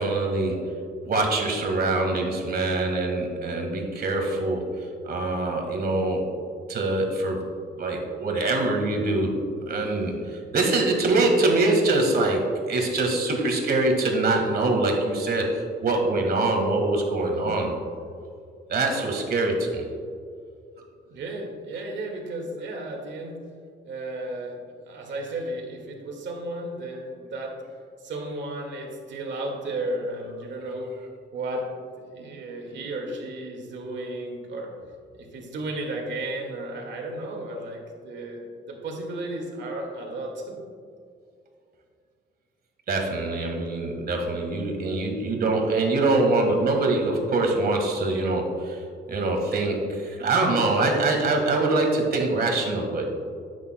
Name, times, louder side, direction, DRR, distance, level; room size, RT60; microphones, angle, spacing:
voice 1, 0.0-6.3 6.7-7.4 7.8-9.3 9.7-17.8 18.7-19.9 42.9-48.8 49.1-53.1, right 2 dB, 50° right, 2 dB, 1.7 m, -24 dB
voice 2, 21.1-23.4 23.8-24.6 24.9-27.6 28.0-30.9 31.3-31.7 32.1-34.7 35.1-38.4 38.7-40.6, right 1 dB, 65° right, 1 dB, 1.9 m, -33 dB
11.0 x 8.5 x 2.2 m, 2.2 s
cardioid pair, 90°, 20 cm